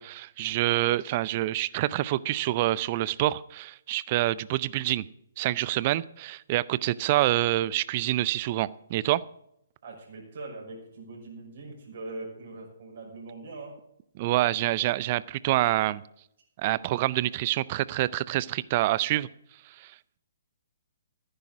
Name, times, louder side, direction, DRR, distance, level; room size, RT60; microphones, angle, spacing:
voice 1, 0.0-5.0 5.4-9.2 14.2-16.0 16.6-19.3 19.8-20.2, right 15 dB, 35° right, 20 dB, 0.5 m, -27 dB
voice 2, 9.8-13.8, right 2 dB, 50° right, 0 dB, 5.8 m, -41 dB
14.5 x 10.5 x 5.0 m, 0.76 s
figure-of-eight pair, 130°, 0 cm